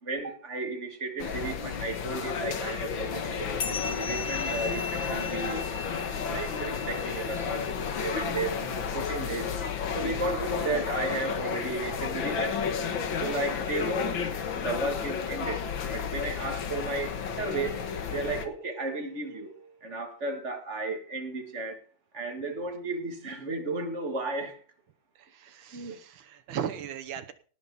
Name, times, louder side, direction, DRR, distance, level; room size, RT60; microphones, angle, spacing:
voice 1, 0.0-5.7 6.3-9.5 9.9-12.6 13.2-14.2 14.6-15.7 15.9-21.8 22.1-24.6 25.7-26.0, right 3 dB, 35° right, 4 dB, 2.3 m, -34 dB
sound 1, 1.2-18.5, left 6 dB, 75° left, 2.2 m, -32 dB
sound 2, 3.6-8.5, left 4 dB, 50° left, 1.8 m, -38 dB
voice 2, 25.2-27.3, right 8 dB, 85° right, 8 dB, 1.9 m, -37 dB
18.0 x 7.1 x 5.5 m, 0.42 s
omnidirectional pair, 2.1 m